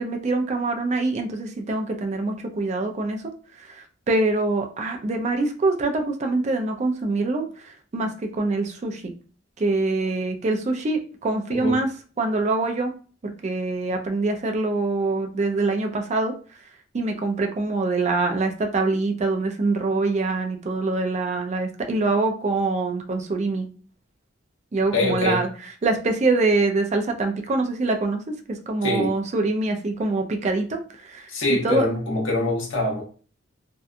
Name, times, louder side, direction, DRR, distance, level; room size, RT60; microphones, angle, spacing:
voice 1, 0.0-3.2 3.7-9.1 9.6-11.9 12.2-12.9 13.2-16.3 16.9-23.7 24.7-25.5 25.8-28.2 28.5-31.3 31.6-31.9, right 3 dB, 35° right, 4 dB, 0.4 m, -24 dB
voice 2, 24.9-25.4 28.8-29.1 31.3-33.0, left 2 dB, 65° left, -1 dB, 0.8 m, -24 dB
2.7 x 2.2 x 2.4 m, 0.40 s
head